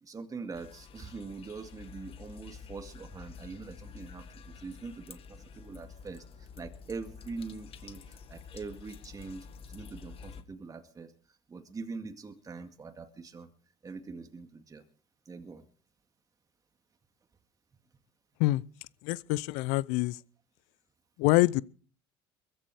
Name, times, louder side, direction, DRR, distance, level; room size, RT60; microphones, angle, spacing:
voice 1, 0.0-11.1 11.5-13.5 13.8-14.8 15.3-15.6, right 4 dB, 25° right, 2.2 m, -43 dB
sound 1, 0.5-10.4, left 6 dB, 45° left, 1.8 m, -49 dB
voice 2, 19.0-20.2 21.2-21.6, left 19 dB, 65° left, 0.6 m, -25 dB
22.5 x 10.5 x 5.0 m
hypercardioid pair, 70°, 13 cm